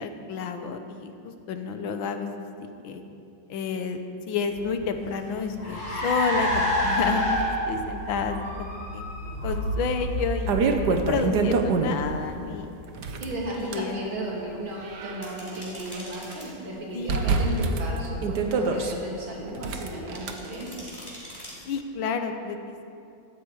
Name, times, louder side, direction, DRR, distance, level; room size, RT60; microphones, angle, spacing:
voice 1, 0.0-3.0 3.5-4.0 4.3-9.0 9.4-12.7 13.6-14.0 16.9-17.2 18.4-19.1 21.7-22.8, left 5 dB, 85° left, 7 dB, 1.7 m, -30 dB
Car, 4.5-12.3, equal, 70° left, 4.3 m, -29 dB
sound 1, 9.5-9.6 10.1-12.2 12.9-13.9 14.6-16.0 16.3-16.4 17.1-18.9 19.6-20.3, right 4 dB, 60° right, 1.5 m, -26 dB
voice 2, 13.2-20.9, right 1 dB, 90° right, -4 dB, 3.3 m, -34 dB
sound 2, 15.2-16.5 20.1-21.5, equal, 10° left, 3.5 m, -43 dB
16.5 x 13.0 x 4.8 m, 2.5 s
omnidirectional pair, 2.1 m